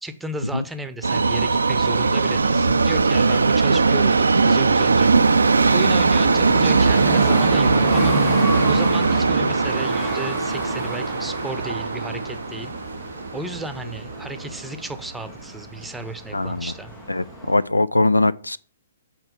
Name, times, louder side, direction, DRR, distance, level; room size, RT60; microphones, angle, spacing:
voice 1, 0.0-5.2 5.7-8.2 8.6-12.7 13.3-16.9, right 2 dB, 5° right, 0.7 m, -34 dB
Subway metro underground, 1.0-15.1 15.5-15.6 16.4-16.5 16.8-16.9 17.5-17.6, right 4 dB, 75° right, 0.5 m, -20 dB
sound 1, 5.1-17.6, left 5 dB, 10° left, 0.3 m, -35 dB
voice 2, 16.3-16.7 17.1-18.6, left 2 dB, 85° left, 0.3 m, -21 dB
8.0 x 4.4 x 6.4 m
figure-of-eight pair, 120°, 0 cm